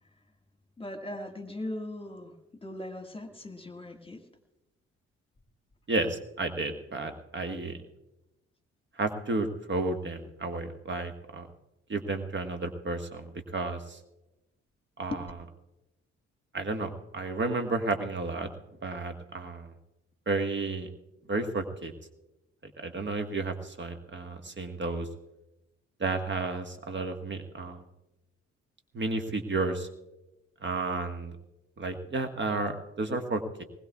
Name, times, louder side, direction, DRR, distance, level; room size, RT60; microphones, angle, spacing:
voice 1, 0.8-2.4 2.6-4.2 15.1-15.2, left 1 dB, 15° left, 5 dB, 1.7 m, -39 dB
voice 2, 5.9-7.8 9.0-11.5 11.9-14.0 15.0-15.2 16.5-18.5 18.8-19.7 20.3-20.9 21.3-21.9 22.8-25.1 26.0-27.8 28.9-29.9 30.6-31.3 31.8-33.6, right 3 dB, 35° right, 6 dB, 1.5 m, -32 dB
21.5 x 20.0 x 2.4 m, 0.96 s
figure-of-eight pair, 45°, 33 cm